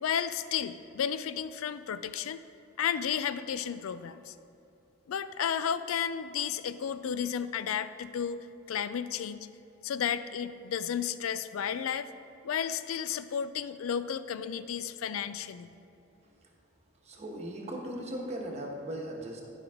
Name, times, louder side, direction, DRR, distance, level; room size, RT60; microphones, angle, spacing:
voice 1, 0.0-2.4 2.8-4.3 5.1-9.5 9.8-12.1 12.4-15.7, left 8 dB, 80° left, 13 dB, 0.4 m, -33 dB
voice 2, 17.0-19.4, right 1 dB, 35° right, -1 dB, 1.2 m, -38 dB
12.0 x 5.4 x 3.6 m, 2.9 s
head